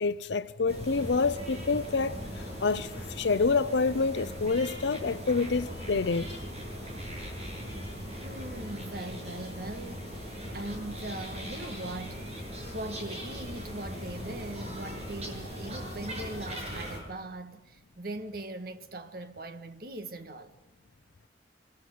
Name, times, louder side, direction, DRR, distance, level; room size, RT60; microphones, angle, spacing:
voice 1, 0.0-6.3, left 4 dB, 80° left, 0.7 m, -28 dB
sound 1, 0.7-17.0, equal, 35° right, 7.6 m, -39 dB
voice 2, 8.1-20.5, right 2 dB, 55° right, 1.6 m, -40 dB
24.5 x 14.5 x 9.5 m
head